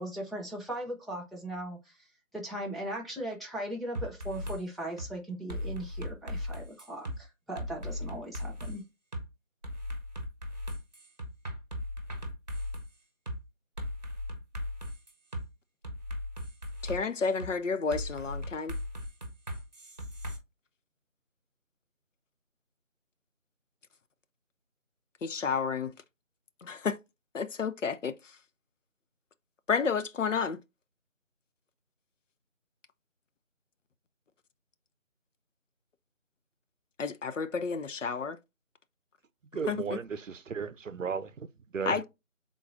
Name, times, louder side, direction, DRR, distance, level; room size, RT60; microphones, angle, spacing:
voice 1, 0.0-2.0 2.3-8.8, right 1 dB, ahead, 0.5 m, -38 dB
sound 1, 3.9-4.6 5.0-5.1 5.5-7.2 7.6-8.7 9.1-9.2 9.6-12.9 13.3-13.4 13.8-15.4 15.8-17.0 17.4-17.5 17.9-20.4, left 1 dB, 35° right, 0.9 m, -37 dB
voice 2, 16.8-18.8 25.2-25.9 26.6-27.0 27.3-28.1 29.7-30.6 37.0-38.4 39.7-39.8 41.9-42.0, left 5 dB, 65° left, 0.5 m, -31 dB
voice 3, 39.5-41.5 41.7-42.0, right 6 dB, 70° right, 0.6 m, -35 dB
4.6 x 3.7 x 2.6 m
figure-of-eight pair, 165°, 40 cm